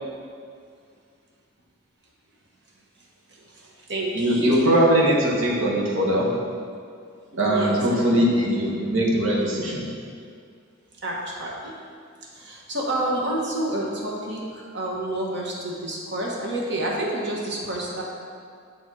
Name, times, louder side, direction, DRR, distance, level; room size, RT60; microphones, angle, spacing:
voice 1, 3.3-4.6 7.3-8.5 11.0-11.7 12.3-18.0, right 1 dB, 60° right, -2 dB, 1.2 m, -29 dB
voice 2, 4.1-6.3 7.4-9.9, equal, 90° right, -4 dB, 1.4 m, -21 dB
7.3 x 4.1 x 4.8 m, 2.2 s
head